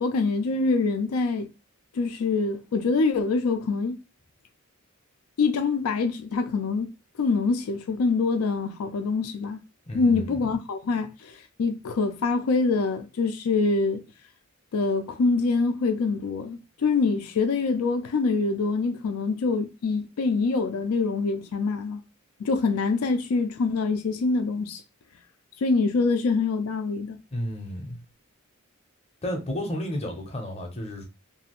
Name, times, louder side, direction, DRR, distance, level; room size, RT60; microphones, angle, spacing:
voice 1, 0.0-1.5 1.9-4.0 5.4-6.9 7.2-9.6 9.9-14.0 14.7-22.0 22.4-24.8 25.6-27.2, left 4 dB, 85° left, 0.4 m, -25 dB
voice 2, 9.9-10.4 27.3-28.0 29.2-31.0, left 1 dB, 30° left, 0.6 m, -32 dB
2.6 x 2.4 x 2.9 m
head